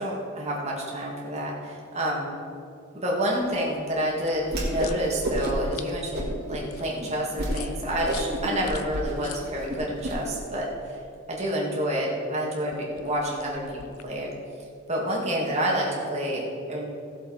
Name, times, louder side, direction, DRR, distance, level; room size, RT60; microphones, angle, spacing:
voice 1, 0.0-2.3 2.9-11.0 11.3-14.3 14.9-16.4 16.7-16.8, equal, 30° right, -3 dB, 2.2 m, -29 dB
sound 1, 4.2-10.1 12.7-14.2, left 4 dB, 85° left, 0.6 m, -42 dB
Whoosh swoosh swish, 4.4-5.0 5.2-5.7 6.1-6.6 7.0-7.1 7.4-7.6 7.9-10.1, right 1 dB, 50° right, 2.4 m, -30 dB
16.0 x 7.2 x 4.4 m, 2.5 s
head